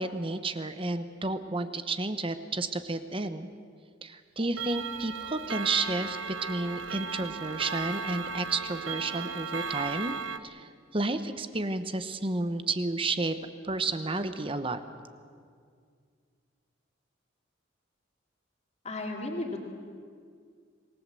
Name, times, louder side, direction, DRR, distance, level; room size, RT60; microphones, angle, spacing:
voice 1, 0.0-3.5 4.0-10.1 10.4-13.4 13.6-14.8, right 2 dB, 30° right, 10 dB, 1.0 m, -31 dB
Clock, 4.6-10.4, right 5 dB, 80° right, 1.0 m, -35 dB
voice 2, 18.8-19.6, left 2 dB, 35° left, 0 dB, 2.6 m, -34 dB
27.0 x 19.5 x 7.7 m, 2.1 s
head